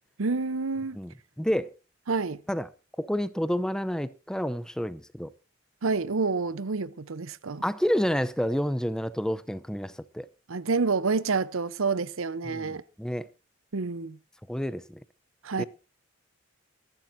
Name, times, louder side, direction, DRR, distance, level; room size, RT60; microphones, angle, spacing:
voice 1, 0.2-1.0 2.1-2.4 5.8-7.6 10.5-12.8 13.7-14.2 15.4-15.7, right 4 dB, 80° right, 0.8 m, -28 dB
voice 2, 1.4-1.7 2.5-2.7 3.0-5.3 7.6-10.3 12.4-13.3 14.5-15.0 15.6-15.7, equal, 5° left, 0.6 m, -29 dB
22.5 x 12.0 x 2.7 m
head